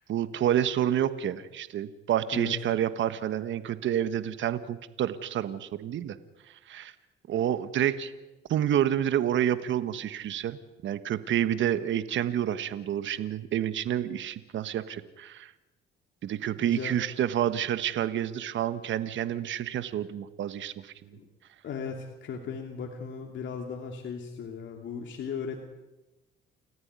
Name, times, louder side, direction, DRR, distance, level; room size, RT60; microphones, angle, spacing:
voice 1, 0.0-6.2 6.7-6.9 7.3-8.1 8.5-15.5 16.2-20.9, right 10 dB, 70° right, 13 dB, 1.3 m, -29 dB
voice 2, 16.6-17.0 21.1-21.3 21.6-25.7, left 6 dB, 70° left, 2 dB, 2.9 m, -37 dB
29.5 x 14.5 x 9.7 m, 1.1 s
cardioid pair, 90°, 20 cm